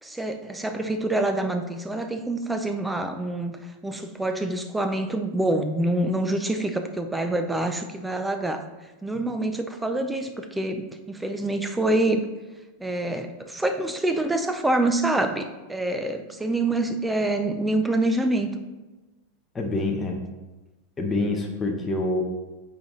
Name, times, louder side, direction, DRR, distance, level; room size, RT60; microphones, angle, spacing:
voice 1, 0.0-8.6 9.0-12.3 12.8-18.6, right 2 dB, 5° right, 6 dB, 0.4 m, -26 dB
voice 2, 19.5-20.2 21.0-22.2, left 2 dB, 10° left, 1 dB, 0.7 m, -26 dB
8.3 x 3.9 x 3.1 m, 1.1 s
supercardioid pair, 165°, 0 cm